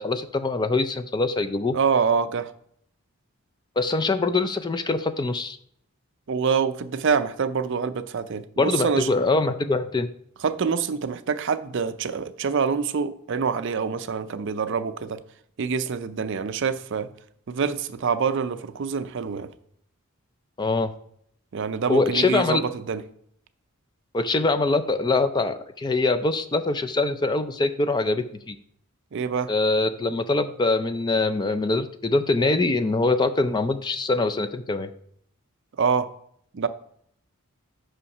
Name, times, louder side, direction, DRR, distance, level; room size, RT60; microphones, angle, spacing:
voice 1, 0.0-1.8 3.8-5.6 8.6-10.1 20.6-20.9 21.9-22.6 24.1-28.6 29.5-34.9, left 3 dB, 20° left, 0.4 m, -23 dB
voice 2, 1.7-2.5 6.3-9.1 10.4-15.2 15.6-17.1 17.5-19.5 21.5-23.0 29.1-29.5 35.8-36.1 36.5-36.7, right 6 dB, 55° right, 0.5 m, -26 dB
5.7 x 5.7 x 5.3 m
head